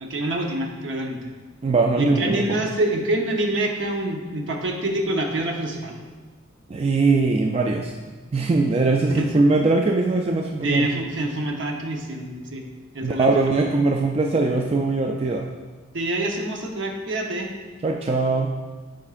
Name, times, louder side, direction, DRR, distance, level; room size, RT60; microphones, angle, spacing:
voice 1, 0.0-1.2 2.0-6.0 9.1-9.3 10.6-12.6 12.9-13.5 15.9-17.5, right 1 dB, 65° right, 2 dB, 0.8 m, -26 dB
voice 2, 1.6-2.6 6.7-7.9 8.3-10.9 13.0-15.5 17.8-18.5, right 3 dB, 30° right, 1 dB, 0.3 m, -21 dB
8.4 x 5.2 x 2.4 m, 1.4 s
head